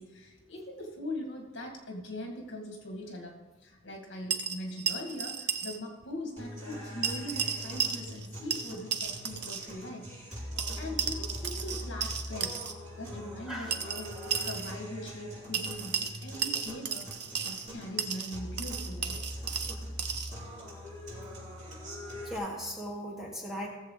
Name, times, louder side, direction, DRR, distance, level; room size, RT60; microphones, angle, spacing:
voice 1, 0.0-3.4 3.6-10.5 10.8-12.6 13.0-14.2 14.4-19.2, left 1 dB, 65° left, 1 dB, 2.3 m, -41 dB
sound 1, 4.3-5.8 6.0-6.1 7.0-8.3 8.5-9.7 10.6-12.7 13.7-14.7 15.5-17.7 18.0-20.3, right 7 dB, 60° right, 0.9 m, -34 dB
sound 2, 6.4-22.4, equal, 40° right, 4.4 m, -42 dB
voice 2, 22.2-23.7, equal, ahead, -2 dB, 1.8 m, -37 dB
17.5 x 7.5 x 4.1 m, 1.2 s
head